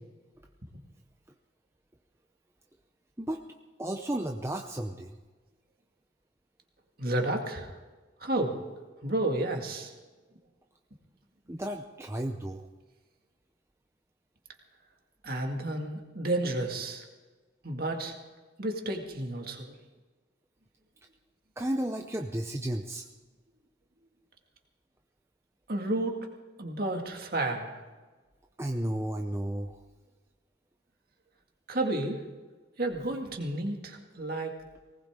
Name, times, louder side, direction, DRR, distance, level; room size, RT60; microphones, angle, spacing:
voice 1, 3.8-5.2 11.5-12.7 21.6-23.0 28.6-29.8, right 1 dB, 15° right, 4 dB, 0.6 m, -33 dB
voice 2, 7.0-7.7 8.2-8.6 9.0-9.9 15.2-17.0 17.6-18.2 18.6-19.7 25.7-26.2 26.6-27.8 31.7-32.2 32.8-34.6, right 2 dB, 50° right, 2 dB, 2.1 m, -31 dB
19.0 x 19.0 x 3.7 m, 1.3 s
head